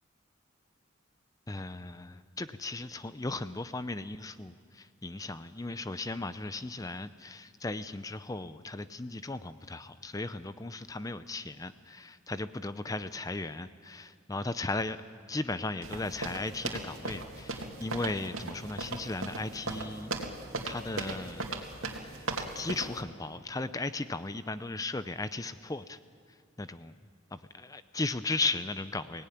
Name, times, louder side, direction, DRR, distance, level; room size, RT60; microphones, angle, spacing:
voice 1, 1.5-15.0 15.3-20.1 20.6-21.5 22.0-22.3 22.5-26.0 26.6-27.0 27.3-29.3, left 2 dB, 15° left, 12 dB, 0.5 m, -36 dB
sound 1, 15.8-23.0, right 3 dB, 85° right, 2.5 m, -37 dB
22.5 x 18.0 x 10.0 m, 2.2 s
head